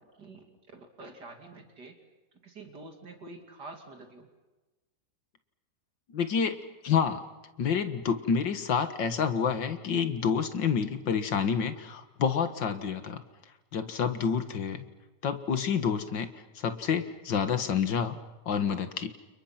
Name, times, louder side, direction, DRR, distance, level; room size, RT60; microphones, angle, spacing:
voice 1, 0.2-2.0 2.4-4.3, right 2 dB, 65° right, 4 dB, 3.2 m, -47 dB
voice 2, 6.1-6.6 6.8-7.2 7.6-13.2 13.7-14.8 15.2-16.3 16.6-18.2 18.5-19.1, left 6 dB, 90° left, 9 dB, 2.3 m, -28 dB
30.0 x 29.5 x 5.9 m, 1.2 s
omnidirectional pair, 1.9 m